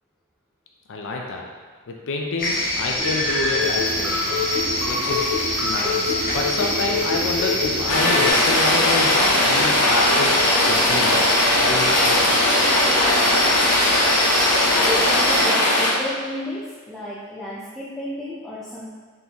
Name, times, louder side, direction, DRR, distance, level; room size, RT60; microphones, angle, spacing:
voice 1, 0.9-1.5 1.9-4.2 4.8-11.3 11.5-12.3, left 3 dB, 55° left, 0 dB, 0.4 m, -28 dB
sound 1, 2.4-15.4, left 1 dB, 40° left, 0.9 m, -26 dB
sound 2, 3.0-8.3, left 3 dB, 40° right, 1.4 m, -26 dB
Rain, 7.9-15.9, left 1 dB, 85° left, 0.9 m, -19 dB
voice 2, 14.3-18.9, left 1 dB, ahead, -9 dB, 0.5 m, -32 dB
4.0 x 3.7 x 2.9 m, 1.5 s
head